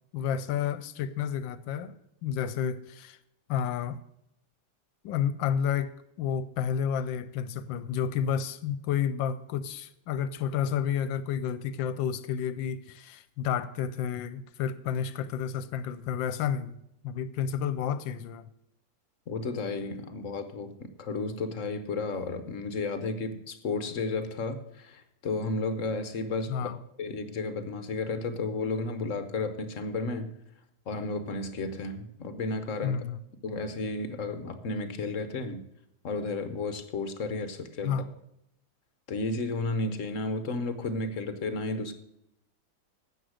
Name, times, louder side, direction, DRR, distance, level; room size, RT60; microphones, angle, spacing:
voice 1, 0.1-1.9 2.2-3.2 3.5-4.0 5.0-16.8 17.0-18.5 26.5-26.8 32.8-33.2 37.8-38.1, left 8 dB, 75° left, 1.3 m, -30 dB
voice 2, 19.3-26.7 27.0-30.3 30.9-33.0 33.4-35.6 36.0-38.0 39.1-41.9, left 3 dB, 55° left, 0.9 m, -33 dB
12.5 x 8.0 x 6.3 m
omnidirectional pair, 2.2 m